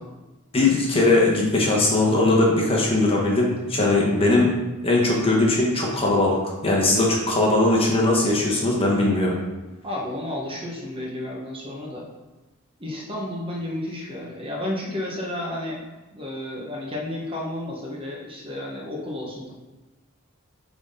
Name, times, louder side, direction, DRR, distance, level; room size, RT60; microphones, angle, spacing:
voice 1, 0.5-4.5 4.8-9.4, left 2 dB, 25° left, -3 dB, 1.1 m, -20 dB
voice 2, 9.8-12.1 12.8-15.8 16.1-19.5, left 1 dB, 25° right, -2 dB, 1.3 m, -32 dB
8.3 x 3.7 x 3.8 m, 1.1 s
head